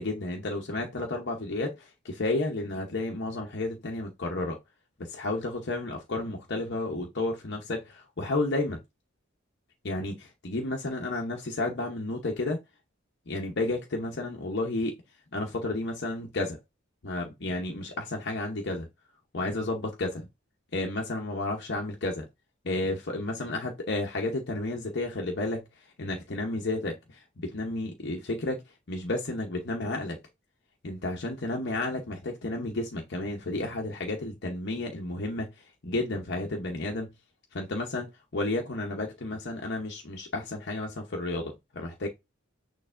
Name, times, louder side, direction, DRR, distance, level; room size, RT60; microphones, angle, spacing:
voice 1, 0.0-4.6 5.0-8.8 9.8-12.6 13.3-14.9 15.3-16.6 17.0-18.9 19.3-20.3 20.7-22.3 22.6-25.6 26.0-28.6 28.9-30.2 30.8-35.5 35.8-37.1 37.5-42.1, left 2 dB, 55° left, 0.8 m, -32 dB
6.5 x 3.2 x 2.5 m
head